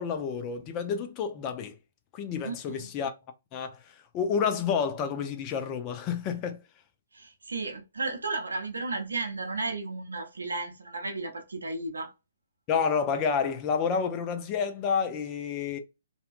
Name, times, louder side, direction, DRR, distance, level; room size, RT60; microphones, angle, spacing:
voice 1, 0.0-1.7 2.1-3.1 3.5-6.6 12.7-15.8, left 6 dB, 30° left, 0.5 m, -29 dB
voice 2, 2.4-2.9 7.1-12.1, right 3 dB, 80° right, 0.7 m, -34 dB
2.7 x 2.2 x 2.5 m
figure-of-eight pair, 130°, 0 cm